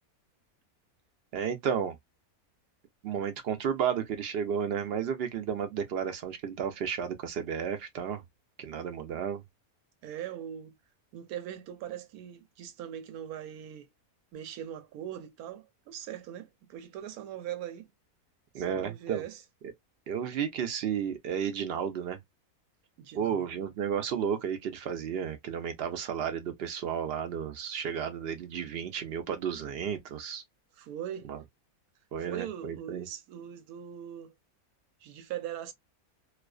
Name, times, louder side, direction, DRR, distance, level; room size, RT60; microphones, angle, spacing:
voice 1, 1.3-2.0 3.0-8.2 8.6-9.4 18.5-19.2 20.1-22.2 23.1-30.4 31.3-31.4 32.1-33.1, right 8 dB, 70° right, 0.6 m, -32 dB
voice 2, 10.0-10.7 11.1-13.9 14.3-17.9 18.5-19.4 23.0-23.5 30.7-31.3 32.2-34.3 35.0-35.7, right 10 dB, 85° right, 1.1 m, -41 dB
2.4 x 2.3 x 2.2 m
omnidirectional pair, 1.5 m